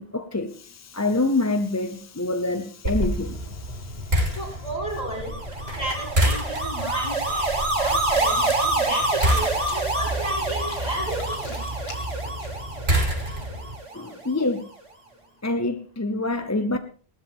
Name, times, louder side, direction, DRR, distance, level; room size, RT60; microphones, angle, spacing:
voice 1, 0.0-4.4 13.9-14.7 15.4-16.8, left 2 dB, 20° left, 0.7 m, -27 dB
sound 1, 2.8-13.7, right 1 dB, 80° right, 3.7 m, -28 dB
voice 2, 4.4-5.4 5.8-11.5, right 1 dB, 40° left, 6.9 m, -33 dB
sound 2, 5.1-14.4, right 2 dB, 30° right, 2.6 m, -27 dB
sound 3, 8.1-12.8, left 2 dB, 80° left, 2.5 m, -44 dB
18.0 x 13.0 x 3.7 m
omnidirectional pair, 1.0 m